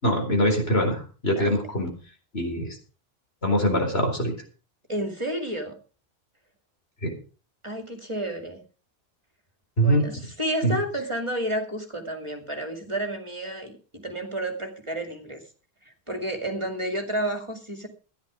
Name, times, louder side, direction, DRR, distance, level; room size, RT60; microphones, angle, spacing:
voice 1, 0.0-1.9 2.3-2.8 3.4-4.3 7.0-7.1 9.8-10.0 10.6-10.8, equal, 75° left, 2 dB, 4.6 m, -23 dB
voice 2, 4.9-5.7 7.6-8.6 9.8-15.4 15.8-17.9, right 1 dB, 30° right, 4 dB, 2.5 m, -31 dB
15.0 x 10.5 x 5.1 m, 0.36 s
omnidirectional pair, 1.1 m